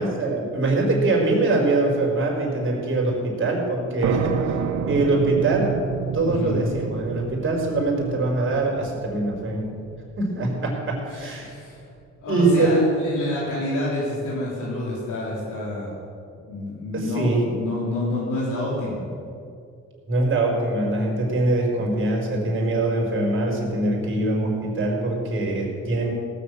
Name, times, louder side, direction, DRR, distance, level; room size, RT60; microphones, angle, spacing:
voice 1, 0.0-4.3 4.9-5.8 6.1-9.7 10.2-11.5 12.2-12.9 16.9-17.4 20.1-26.1, right 2 dB, 40° right, -1 dB, 4.6 m, -23 dB
sound 1, 4.0-11.4, right 7 dB, 65° right, 1.0 m, -30 dB
voice 2, 6.2-6.6 11.1-11.8 12.2-15.9 16.5-19.0, left 2 dB, 80° left, -6 dB, 3.7 m, -28 dB
17.5 x 7.1 x 8.1 m, 2.4 s
cardioid pair, 90°, 30 cm